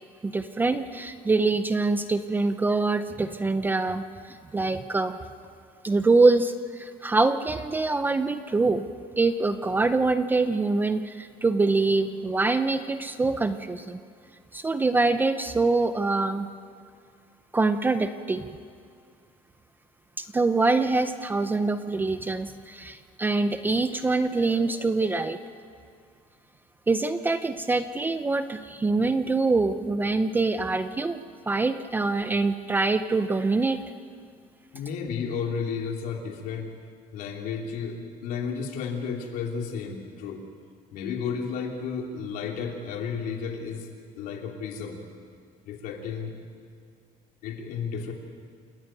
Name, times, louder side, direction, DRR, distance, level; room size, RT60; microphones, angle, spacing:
voice 1, 0.2-5.2 5.8-8.8 9.2-14.0 14.5-16.5 17.5-18.6 20.2-25.4 26.9-33.8, right 3 dB, 10° right, 10 dB, 0.5 m, -24 dB
voice 2, 34.7-36.7 37.1-40.4 40.9-43.9 44.2-45.0 45.6-46.3 47.4-48.1, left 6 dB, 70° left, 2 dB, 3.1 m, -32 dB
28.5 x 13.5 x 9.2 m, 2.2 s
cardioid pair, 180°, 16 cm